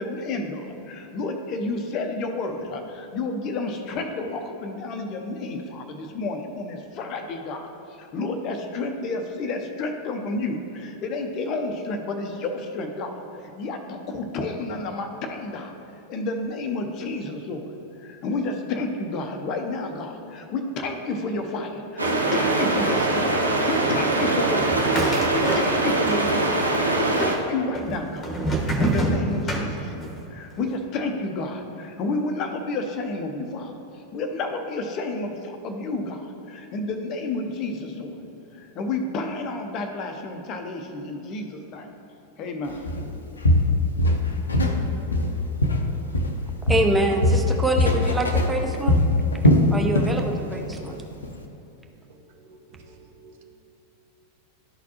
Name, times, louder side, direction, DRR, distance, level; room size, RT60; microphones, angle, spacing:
voice 1, 0.0-17.7 18.0-38.2 38.5-41.9 42.4-42.8, left 2 dB, 35° left, 5 dB, 0.6 m, -30 dB
sound 1, 22.0-27.4, right 2 dB, 80° right, 0.7 m, -22 dB
sound 2, 24.7-26.1 26.4-27.1 27.7-30.2, right 1 dB, 15° left, 1.1 m, -26 dB
Walk footsteps, 42.9-43.1 43.4-44.8 45.1-46.4 46.7-50.2 50.5-50.8 51.2-51.3, left 1 dB, 75° left, 0.6 m, -20 dB
voice 2, 46.7-49.0 49.7-51.0, right 1 dB, 10° right, 2 dB, 0.7 m, -25 dB
voice 3, 52.2-53.4, right 3 dB, 50° right, 1 dB, 0.8 m, -51 dB
12.0 x 4.1 x 2.8 m, 2.8 s
figure-of-eight pair, 90°, 0 cm